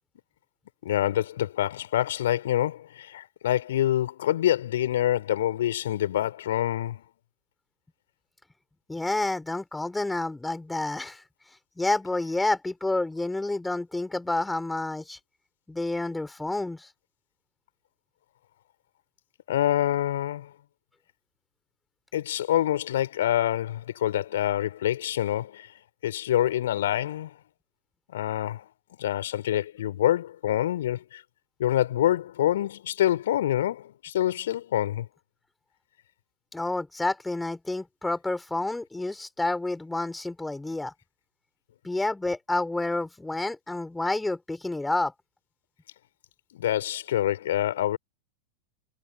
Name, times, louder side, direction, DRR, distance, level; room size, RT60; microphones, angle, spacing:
voice 1, 0.8-7.0 19.5-20.5 22.1-25.7 26.0-27.3 28.1-28.7 29.0-31.2 31.6-35.1 46.5-48.0, left 12 dB, 60° left, 3.7 m, -26 dB
voice 2, 8.9-11.2 11.8-15.2 15.7-16.9 36.5-40.9 41.8-45.1, left 2 dB, 5° left, 3.6 m, -29 dB
figure-of-eight pair, 90°, 0 cm